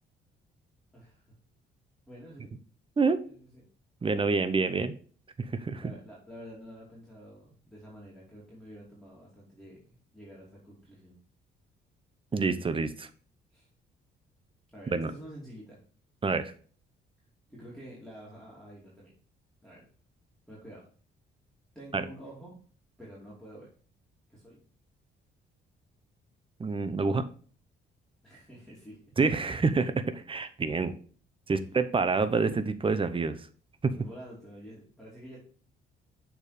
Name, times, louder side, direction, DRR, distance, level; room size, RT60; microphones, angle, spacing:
voice 1, 0.9-1.3 2.1-2.5 3.2-3.6 5.8-11.2 13.5-13.7 14.7-15.8 17.5-19.1 19.6-19.8 20.5-20.8 21.7-22.6 23.0-23.7 24.3-24.6 28.2-29.0 34.0-35.4, equal, 5° left, -6 dB, 2.9 m, -48 dB
voice 2, 4.0-4.9 5.5-5.8 12.3-13.1 14.9-15.1 16.2-16.5 21.9-22.0 26.6-27.2 29.2-30.9 31.5-33.4 33.8-33.9, right 4 dB, 25° right, 11 dB, 0.7 m, -27 dB
7.0 x 4.3 x 5.0 m, 0.43 s
cardioid pair, 90°, 20 cm